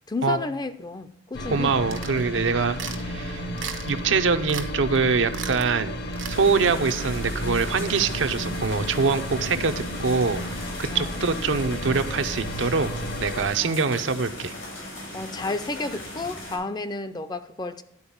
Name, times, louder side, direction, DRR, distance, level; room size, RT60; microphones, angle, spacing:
voice 1, 0.1-1.7 2.8-3.2 10.9-11.1 13.6-13.8 15.1-17.8, left 3 dB, 20° left, 0.5 m, -32 dB
sound 1, 1.3-13.5, equal, 55° left, 1.0 m, -32 dB
voice 2, 1.5-3.4 3.9-6.0 6.3-9.7 10.0-10.4 10.8-12.9 13.2-14.5, right 5 dB, 70° right, 0.7 m, -24 dB
sound 2, 1.9-2.2 2.8-3.0 3.6-4.0 4.5-4.7 4.9-5.0 5.3-5.7 6.1-6.4, right 7 dB, 90° right, 1.0 m, -35 dB
sound 3, 6.3-16.6, left 1 dB, 90° left, 4.4 m, -38 dB
11.0 x 4.4 x 7.0 m
head